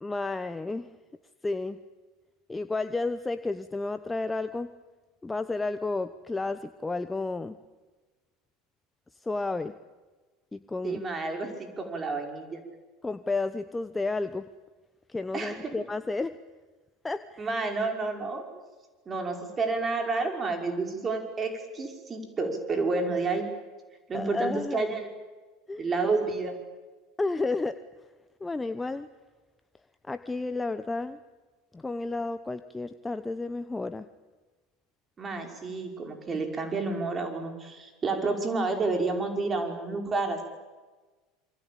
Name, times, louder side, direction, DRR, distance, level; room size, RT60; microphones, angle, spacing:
voice 1, 0.0-0.9 1.4-1.8 2.5-4.7 5.2-7.6 9.2-9.7 10.5-11.0 13.0-14.5 15.1-16.4 17.0-17.6 24.1-24.8 25.7-25.9 27.2-27.8 28.4-29.1 30.1-31.2 31.7-34.1, left 3 dB, 15° left, 11 dB, 1.0 m, -31 dB
voice 2, 10.8-12.6 15.3-15.7 17.4-18.4 19.1-23.5 24.1-25.1 25.8-26.5 35.2-40.4, right 3 dB, 25° right, 4 dB, 5.5 m, -30 dB
27.0 x 24.5 x 8.8 m, 1.3 s
figure-of-eight pair, 75°, 0 cm